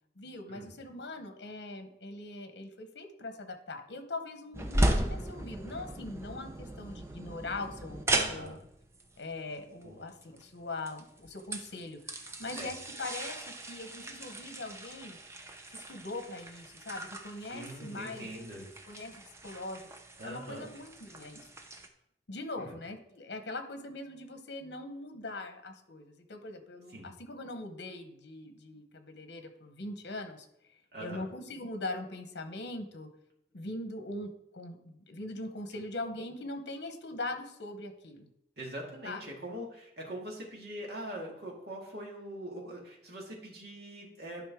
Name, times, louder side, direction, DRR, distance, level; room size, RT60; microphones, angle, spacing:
voice 1, 0.2-8.5 9.2-15.2 15.7-18.3 18.6-19.2 19.4-19.8 20.2-21.5 22.3-30.5 31.0-33.1 33.5-38.3 39.0-39.2, left 2 dB, 80° left, 7 dB, 1.0 m, -41 dB
sound 1, 4.5-21.9, right 1 dB, 15° right, 0.6 m, -37 dB
voice 2, 8.1-8.6 9.8-10.0 12.5-12.7 17.5-18.7 20.2-20.7 22.6-22.8 26.9-27.1 30.9-31.3 38.6-44.4, right 1 dB, 65° right, -2 dB, 2.2 m, -42 dB
11.0 x 5.2 x 3.6 m, 0.77 s
head